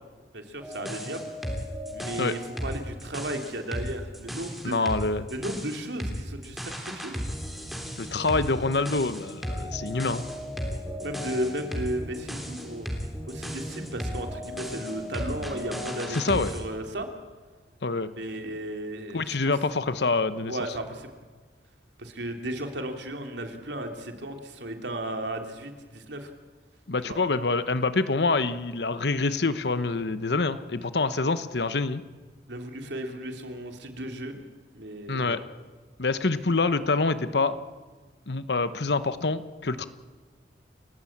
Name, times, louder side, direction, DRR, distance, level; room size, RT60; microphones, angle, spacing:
voice 1, 0.3-1.3 1.9-4.7 5.3-7.2 11.0-12.9 13.3-17.1 18.2-19.4 20.5-21.1 22.0-26.3 27.1-27.2 32.5-34.4 34.7-35.4, right 1 dB, 85° right, 5 dB, 3.0 m, -35 dB
sound 1, 0.6-16.6, equal, ahead, 3.4 m, -35 dB
voice 2, 4.6-5.3 8.0-10.2 16.1-16.5 17.8-18.1 19.1-20.6 26.9-32.0 35.1-35.4 36.0-37.6 38.3-39.8, left 3 dB, 75° left, 12 dB, 1.0 m, -26 dB
29.5 x 14.5 x 8.7 m, 1.4 s
head